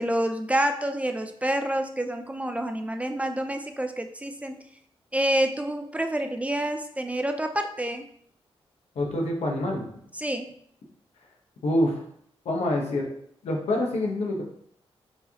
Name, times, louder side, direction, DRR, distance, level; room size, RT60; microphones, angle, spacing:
voice 1, 0.0-4.7 5.1-8.0 10.2-10.5, right 1 dB, 10° right, 6 dB, 0.4 m, -28 dB
voice 2, 9.0-9.8 11.6-12.0 12.4-13.1 13.4-14.4, left 1 dB, 85° left, 0 dB, 0.9 m, -26 dB
4.7 x 2.7 x 2.8 m, 0.67 s
cardioid pair, 60°, 11 cm